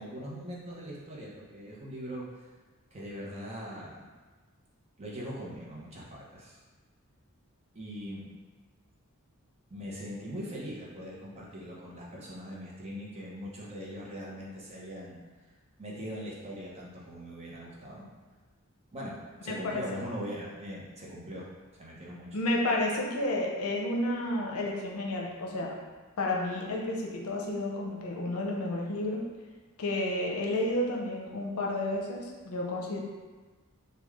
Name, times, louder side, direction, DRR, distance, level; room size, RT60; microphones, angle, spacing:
voice 1, 0.0-2.3 2.9-4.1 5.0-6.6 7.7-8.4 9.7-15.2 15.8-18.1 18.9-19.2 19.4-21.5 21.7-22.3, equal, 30° right, -5 dB, 0.7 m, -41 dB
voice 2, 19.5-19.8 22.3-25.8 26.2-29.2 29.8-33.0, left 1 dB, 85° left, -1 dB, 0.6 m, -31 dB
3.1 x 2.2 x 3.5 m, 1.3 s
head